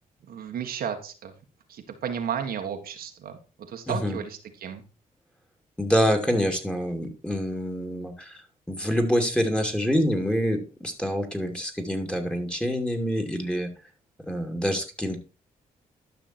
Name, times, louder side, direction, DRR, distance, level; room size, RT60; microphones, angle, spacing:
voice 1, 0.2-1.3 1.7-3.4 3.7-4.8, right 8 dB, 80° right, 4 dB, 1.7 m, -33 dB
voice 2, 3.9-4.2 5.8-8.4 8.7-13.7 14.2-15.2, equal, 5° left, 5 dB, 2.6 m, -26 dB
12.0 x 6.0 x 4.4 m, 0.33 s
cardioid pair, 80°, 15 cm